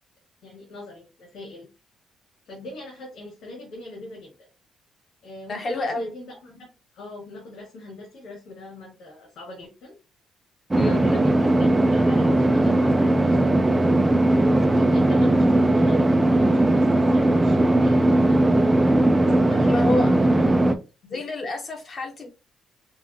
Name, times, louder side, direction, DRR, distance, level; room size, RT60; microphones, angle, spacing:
voice 1, 0.4-1.7 2.4-4.5 5.2-6.7 6.9-9.9 10.7-13.6 14.6-18.6 19.1-20.8 21.0-21.2, left 2 dB, 80° left, 2.5 m, -41 dB
voice 2, 5.5-6.1 10.7-11.0 19.7-20.5 21.1-22.3, left 2 dB, 30° left, 0.9 m, -29 dB
sound 1, 10.7-20.7, right 1 dB, 10° right, 0.3 m, -19 dB
5.5 x 2.4 x 2.8 m
cardioid pair, 180°, 0 cm